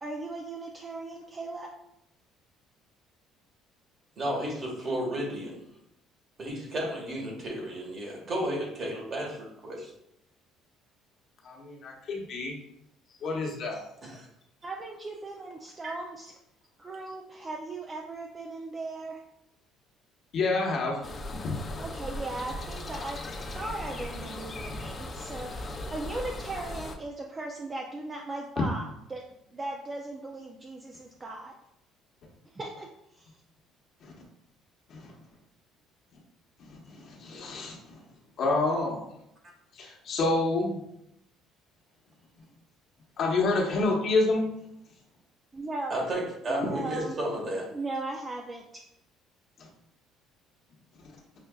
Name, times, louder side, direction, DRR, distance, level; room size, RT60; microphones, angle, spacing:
voice 1, 0.0-1.7 14.6-16.3 16.8-19.2 21.8-23.2 23.5-29.2 29.5-31.5 32.5-33.3 45.5-46.0 46.5-47.2 47.7-48.8, right 2 dB, 25° right, 1 dB, 0.4 m, -38 dB
voice 2, 4.2-5.6 6.4-9.9 14.0-14.3 45.9-47.7, right 1 dB, 40° right, -1 dB, 1.4 m, -33 dB
voice 3, 11.4-12.6 13.2-13.8 20.3-21.0 21.4-21.5 34.0-34.1 34.9-35.1 36.6-38.0 38.4-39.0 39.8-40.8 43.2-44.5, left 3 dB, 55° left, -1 dB, 1.0 m, -28 dB
sound 1, 21.0-27.0, left 2 dB, 30° left, 0.5 m, -38 dB
5.7 x 2.5 x 2.3 m, 0.79 s
cardioid pair, 100°, 0 cm